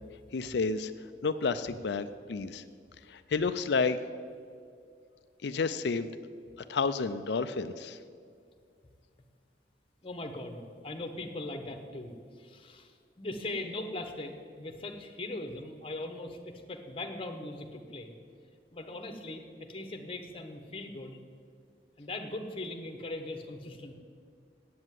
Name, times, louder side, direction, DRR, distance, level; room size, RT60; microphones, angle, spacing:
voice 1, 0.3-0.9 1.2-2.6 3.1-4.0 5.4-6.1 6.7-8.0, left 4 dB, 75° left, 11 dB, 0.4 m, -30 dB
voice 2, 10.0-18.1 18.7-21.1 22.0-23.9, left 2 dB, 30° left, 5 dB, 1.0 m, -40 dB
8.6 x 8.1 x 9.1 m, 2.2 s
head